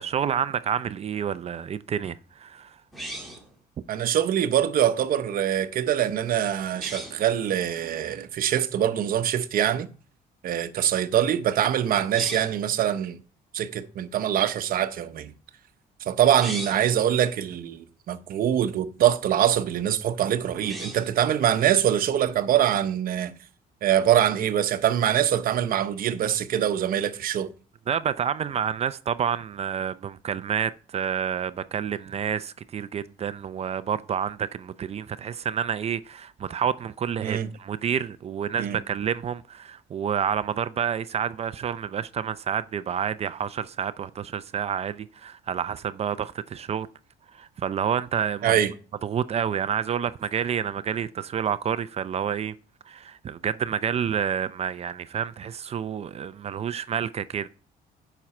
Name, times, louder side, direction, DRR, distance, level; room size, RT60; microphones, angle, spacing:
voice 1, 0.0-2.8 27.9-46.9 47.3-48.6 49.0-52.5 52.9-57.5, right 8 dB, 40° right, 0.5 m, -29 dB
sound 1, 2.9-3.5 6.7-7.2 12.0-12.6 16.2-16.9 20.5-21.2, right 1 dB, ahead, 2.3 m, -37 dB
voice 2, 3.9-9.9 10.4-13.2 13.5-15.3 16.1-23.3 23.8-27.5 37.2-37.5 38.6-38.8 48.4-48.7, right 10 dB, 60° right, 0.9 m, -24 dB
9.1 x 6.0 x 4.3 m
cardioid pair, 110°, 17 cm